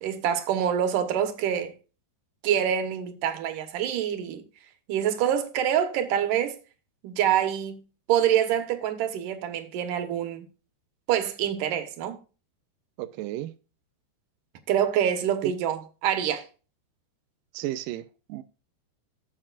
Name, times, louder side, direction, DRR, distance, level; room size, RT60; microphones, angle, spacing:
voice 1, 0.0-1.7 2.4-4.4 4.9-6.6 7.0-7.8 8.1-10.5 11.1-12.2 14.7-16.4, right 9 dB, 65° right, 2.5 m, -26 dB
voice 2, 13.0-13.5 15.4-15.5 17.5-18.4, right 15 dB, 90° right, 1.9 m, -33 dB
15.0 x 7.4 x 2.5 m
omnidirectional pair, 4.7 m